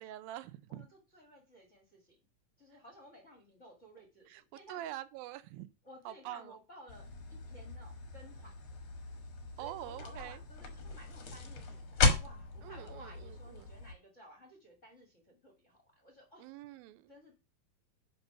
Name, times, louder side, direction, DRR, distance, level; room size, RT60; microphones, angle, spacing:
voice 1, 0.0-0.9 4.3-4.4 4.7-5.7 6.1-6.5 9.6-10.4 12.6-13.7 16.4-17.1, right 14 dB, 85° right, 2.4 m, -45 dB
voice 2, 0.7-2.1 2.6-4.8 5.8-8.5 9.6-16.5 17.1-17.3, equal, 30° left, 1.4 m, -56 dB
sound 1, 6.9-13.9, left 3 dB, 50° left, 1.7 m, -36 dB
10.5 x 4.1 x 5.7 m
omnidirectional pair, 4.1 m